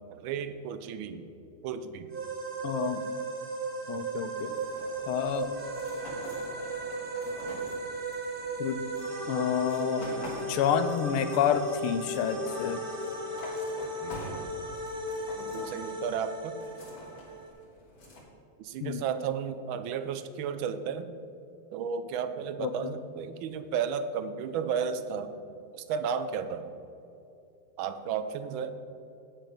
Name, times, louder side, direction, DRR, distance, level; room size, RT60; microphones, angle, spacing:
voice 1, 0.1-1.2 1.6-2.1 14.0-14.2 15.4-16.6 18.6-21.1 21.7-25.3 25.7-26.7 27.8-28.7, right 7 dB, 75° right, 11 dB, 1.3 m, -33 dB
sound 1, 2.1-17.5, right 2 dB, 40° right, 0.8 m, -36 dB
voice 2, 2.6-3.0 3.9-4.5 5.1-5.5 8.6-8.8 9.3-10.1 10.5-12.8 18.8-19.0 22.6-22.9, left 8 dB, 85° left, 10 dB, 1.5 m, -29 dB
sound 2, 4.3-18.2, left 1 dB, 65° left, 2.4 m, -46 dB
8.9 x 7.4 x 5.1 m, 2.7 s
omnidirectional pair, 2.3 m